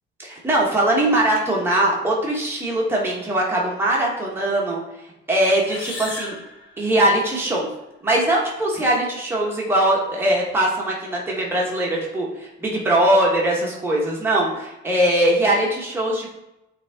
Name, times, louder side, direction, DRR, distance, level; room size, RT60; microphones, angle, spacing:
voice 1, 0.2-4.8 5.3-6.3 6.8-7.7 8.0-16.3, right 1 dB, 10° right, -4 dB, 1.3 m, -21 dB
sound 1, 5.5-7.4, left 2 dB, 65° left, 2.2 m, -36 dB
8.3 x 3.5 x 3.5 m, 0.92 s
cardioid pair, 180°, 20 cm